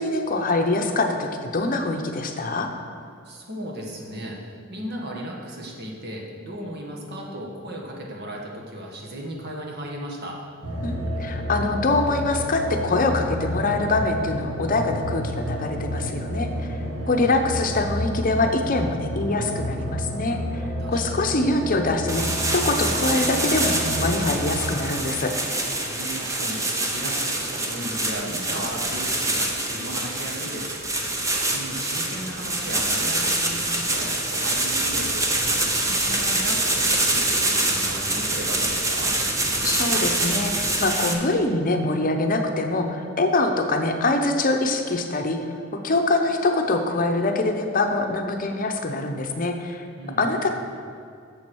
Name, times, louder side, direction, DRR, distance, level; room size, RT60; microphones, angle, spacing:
voice 1, 0.0-2.7 10.8-16.8 17.1-25.3 39.6-45.4 45.8-49.8 50.2-50.5, left 2 dB, 45° left, 5 dB, 0.7 m, -24 dB
voice 2, 3.2-10.4 16.9-17.4 20.8-21.3 25.8-35.3 35.7-39.1 50.0-50.5, right 1 dB, 55° right, -1 dB, 1.6 m, -36 dB
sound 1, 10.6-24.5, equal, 75° right, 1.9 m, -30 dB
sound 2, 22.1-41.1, right 2 dB, 15° right, 0.8 m, -25 dB
7.4 x 7.1 x 6.2 m, 2.4 s
head